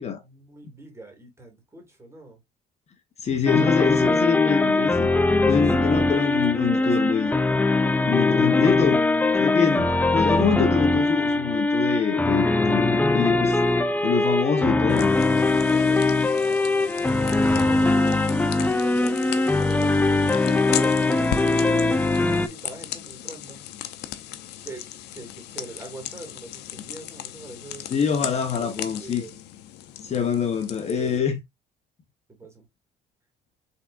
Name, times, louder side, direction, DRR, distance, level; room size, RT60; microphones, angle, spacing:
voice 1, 0.2-2.4 5.8-7.1 15.5-16.1 17.4-23.7 24.6-27.9 28.6-29.4 30.8-31.3 32.3-32.7, right 2 dB, 15° right, 2.2 m, -43 dB
voice 2, 3.2-5.1 5.5-7.3 8.0-9.0 9.4-13.6 14.0-15.1 27.9-29.2 30.0-31.4, left 6 dB, 40° left, 0.9 m, -25 dB
sound 1, 3.5-22.5, left 2 dB, 10° left, 0.4 m, -21 dB
sound 2, 14.9-31.2, left 12 dB, 80° left, 0.6 m, -37 dB
5.6 x 3.5 x 2.5 m
cardioid pair, 110°, 17 cm